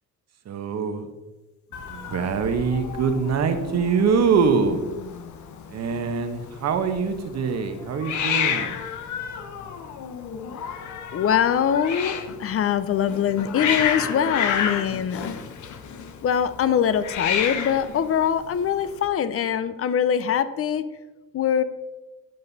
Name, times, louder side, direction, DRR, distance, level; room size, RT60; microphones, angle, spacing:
voice 1, 0.4-1.1 1.9-4.8 5.7-8.8, right 5 dB, 60° right, 7 dB, 1.1 m, -24 dB
Hiss, 1.7-19.1, left 7 dB, 75° left, 0.9 m, -31 dB
voice 2, 11.1-15.3 16.2-20.8 21.3-21.6, left 8 dB, 50° left, 14 dB, 0.6 m, -23 dB
10.5 x 5.4 x 4.0 m, 1.1 s
cardioid pair, 90°, 30 cm